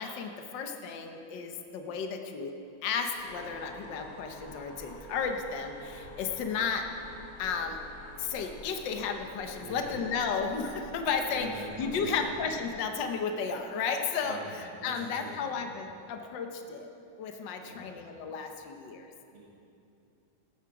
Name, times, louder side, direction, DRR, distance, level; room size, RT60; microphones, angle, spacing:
voice 1, 0.0-2.5 2.8-6.8 7.4-7.8 8.2-11.5 11.8-16.9 17.2-19.1, left 5 dB, 70° left, 4 dB, 1.6 m, -33 dB
sound 1, 3.2-12.7, equal, 45° left, 2.9 m, -48 dB
voice 2, 9.6-10.0 11.3-12.4 14.2-15.6 17.6-18.0 19.3-19.4, right 2 dB, 80° right, -6 dB, 3.3 m, -45 dB
19.0 x 13.0 x 4.9 m, 2.7 s
omnidirectional pair, 2.1 m